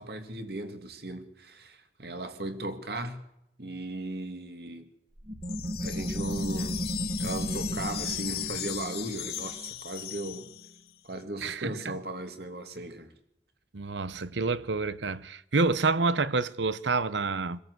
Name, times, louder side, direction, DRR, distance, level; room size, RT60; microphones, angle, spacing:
voice 1, 0.0-3.2 3.6-4.9 5.6-6.8 7.2-10.5 11.0-13.1, right 1 dB, 60° right, 2.4 m, -37 dB
sound 1, 5.2-10.5, equal, 35° right, 1.9 m, -35 dB
sound 2, 5.4-10.9, left 12 dB, 55° left, 1.6 m, -38 dB
voice 2, 11.4-12.0 13.7-17.6, right 3 dB, 85° right, 0.8 m, -28 dB
25.0 x 13.5 x 8.1 m
head